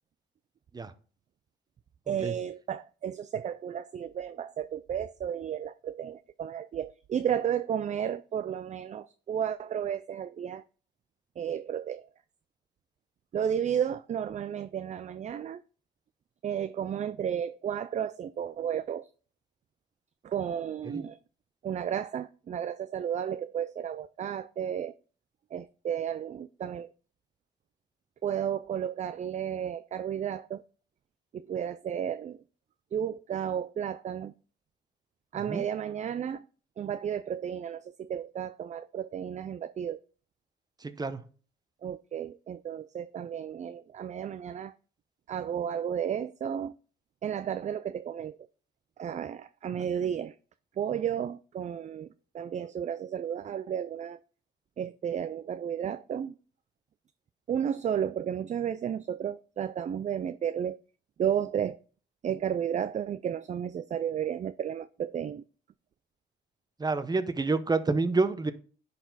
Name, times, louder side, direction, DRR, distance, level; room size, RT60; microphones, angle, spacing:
voice 1, 2.1-10.6 11.4-12.0 13.3-15.6 16.4-19.1 20.2-21.2 21.6-24.9 25.5-26.9 28.2-30.6 31.3-32.4 32.9-34.3 35.3-36.4 36.8-40.0 41.8-44.7 45.3-46.8 47.2-48.4 49.0-50.3 50.8-52.1 52.3-54.2 54.8-56.3 57.5-60.8 61.2-61.8 62.2-65.4, right 9 dB, 35° right, 0.4 m, -33 dB
voice 2, 40.8-41.2 66.8-68.5, right 3 dB, 20° right, 0.8 m, -28 dB
10.0 x 4.2 x 4.0 m
cardioid pair, 90°, 20 cm